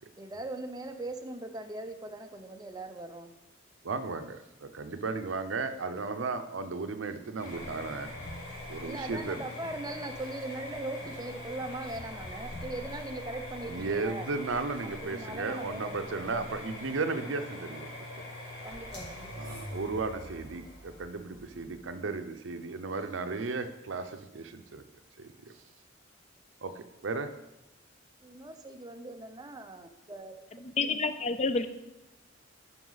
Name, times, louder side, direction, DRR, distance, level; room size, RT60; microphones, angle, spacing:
voice 1, 0.2-3.3 8.8-14.3 14.8-16.6 18.6-19.6 28.2-30.3, right 2 dB, 20° right, 6 dB, 0.6 m, -40 dB
voice 2, 3.8-8.1 8.7-9.4 13.6-18.2 19.4-24.8 25.2-25.5 26.6-27.3, right 4 dB, 75° right, 9 dB, 0.6 m, -35 dB
sound 1, 7.4-21.9, left 1 dB, 55° left, 3.2 m, -43 dB
voice 3, 30.8-31.7, left 4 dB, 35° left, 10 dB, 0.4 m, -28 dB
9.8 x 5.3 x 4.0 m, 0.94 s
head